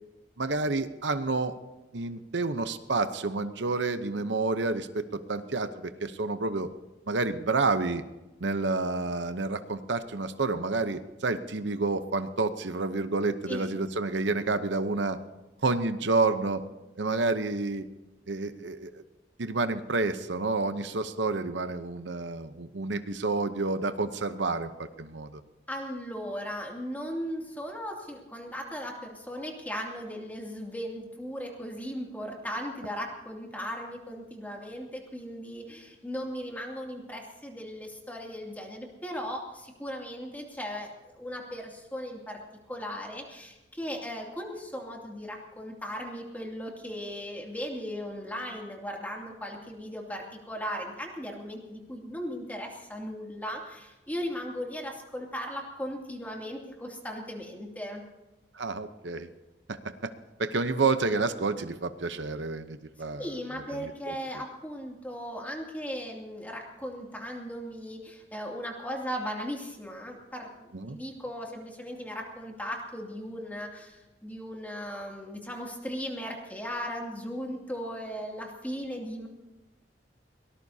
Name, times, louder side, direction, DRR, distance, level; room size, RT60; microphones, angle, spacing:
voice 1, 0.4-1.6 1.9-6.7 7.1-8.0 8.4-15.2 15.6-16.6 17.0-17.8 18.3-19.0 19.4-25.4 58.5-59.3 59.7-60.1 60.4-63.3 63.7-64.1 70.7-71.0, right 3 dB, 80° right, 9 dB, 0.9 m, -29 dB
voice 2, 25.7-42.4 42.7-58.0 63.2-79.3, equal, 10° left, 0 dB, 2.6 m, -37 dB
23.0 x 18.5 x 2.8 m, 1.1 s
head